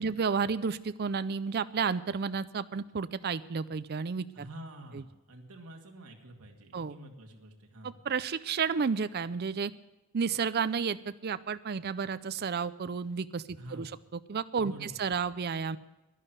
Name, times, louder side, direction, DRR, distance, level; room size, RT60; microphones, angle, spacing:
voice 1, 0.0-4.5 4.9-5.0 6.7-6.9 7.8-9.7 10.1-15.8, right 5 dB, 45° right, 14 dB, 0.5 m, -32 dB
voice 2, 4.3-8.0 13.6-13.9 14.6-15.0, right 1 dB, 80° right, 2 dB, 2.2 m, -48 dB
11.0 x 11.0 x 8.0 m, 1.1 s
head